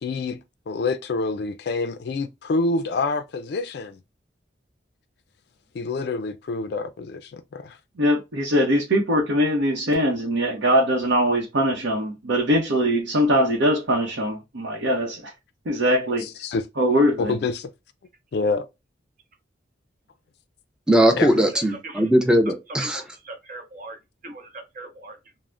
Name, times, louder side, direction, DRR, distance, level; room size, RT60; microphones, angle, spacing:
voice 1, 0.0-4.0 5.7-7.8 16.2-16.7 17.2-17.7 18.3-18.7 21.1-21.4, left 3 dB, 60° left, 0.3 m, -27 dB
voice 2, 8.0-15.3 15.7-16.2 16.8-17.3, equal, 80° right, 0.7 m, -21 dB
voice 3, 20.9-23.0, equal, 5° right, 0.5 m, -19 dB
voice 4, 21.5-21.9 22.9-24.0 24.2-25.2, right 2 dB, 45° right, 0.8 m, -40 dB
3.3 x 2.1 x 2.4 m
head